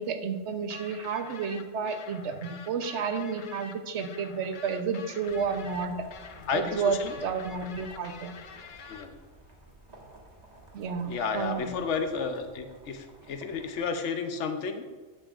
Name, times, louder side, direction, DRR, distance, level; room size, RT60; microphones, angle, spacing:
voice 1, 0.0-6.1 6.5-8.3 10.7-11.7, right 5 dB, 80° right, 7 dB, 1.0 m, -31 dB
sound 1, 0.7-9.1, left 6 dB, 55° left, 0.6 m, -47 dB
sound 2, 5.3-13.9, right 1 dB, 40° right, 1.3 m, -52 dB
voice 2, 6.5-7.1 8.9-9.1 11.1-14.8, left 5 dB, 90° left, 6 dB, 1.0 m, -32 dB
9.9 x 6.6 x 2.5 m, 1.4 s
omnidirectional pair, 1.2 m